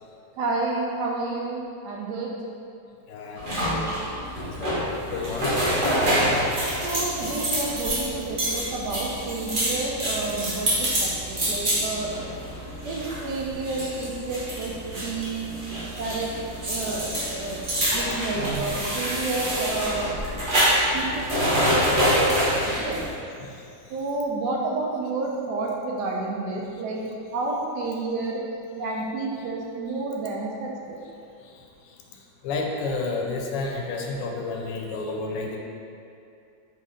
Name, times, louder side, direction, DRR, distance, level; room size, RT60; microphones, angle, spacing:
voice 1, 0.4-2.4 6.0-6.3 6.8-12.1 12.8-15.5 16.0-16.3 16.7-17.6 17.9-20.1 20.4-20.5 20.9-22.3 22.8-23.0 23.9-27.0 27.3-28.4 28.8-31.0, right 3 dB, 75° right, -2 dB, 1.1 m, -30 dB
voice 2, 3.1-3.9 4.6-4.8 5.1-5.5 17.4-17.5 32.4-35.6, left 3 dB, 80° left, 1 dB, 1.2 m, -30 dB
sound 1, 3.4-23.1, equal, 35° right, 0.9 m, -26 dB
4.2 x 3.1 x 3.6 m, 2.5 s
omnidirectional pair, 1.9 m